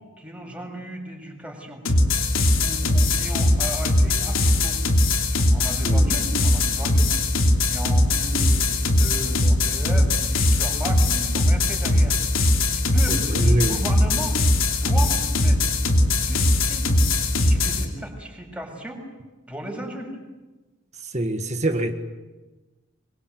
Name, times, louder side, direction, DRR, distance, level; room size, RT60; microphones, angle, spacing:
voice 1, 0.2-1.8 2.6-4.8 5.3-7.2 7.6-14.4 14.7-15.7 16.2-16.9 17.4-19.0 19.5-20.2, right 1 dB, 5° right, 7.0 m, -35 dB
sound 1, 1.9-17.9, left 1 dB, 80° left, 3.1 m, -20 dB
voice 2, 13.1-13.8 21.1-21.9, right 1 dB, 35° right, 1.8 m, -25 dB
27.0 x 23.5 x 8.1 m
head